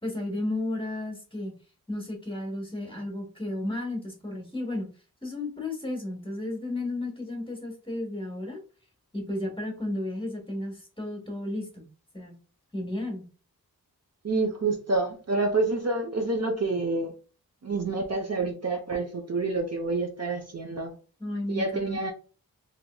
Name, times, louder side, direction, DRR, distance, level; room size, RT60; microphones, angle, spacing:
voice 1, 0.0-1.5 1.9-4.9 5.2-8.6 9.1-11.9 12.1-12.4 12.7-13.3 21.2-22.1, left 1 dB, 15° left, 1.1 m, -33 dB
voice 2, 14.2-17.1 17.6-21.0 21.5-22.1, right 3 dB, 45° right, 0.7 m, -28 dB
3.5 x 2.9 x 2.2 m
wide cardioid pair, 90°, 37 cm